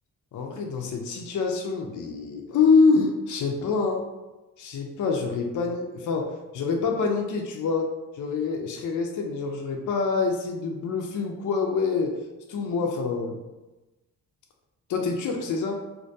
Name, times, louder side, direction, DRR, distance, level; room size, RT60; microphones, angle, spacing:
voice 1, 0.3-4.1 4.6-7.9 8.1-12.1 12.5-13.4 14.9-15.7, left 4 dB, 50° left, 2 dB, 0.5 m, -26 dB
2.2 x 2.2 x 2.6 m, 1.1 s
supercardioid pair, 45°, 39 cm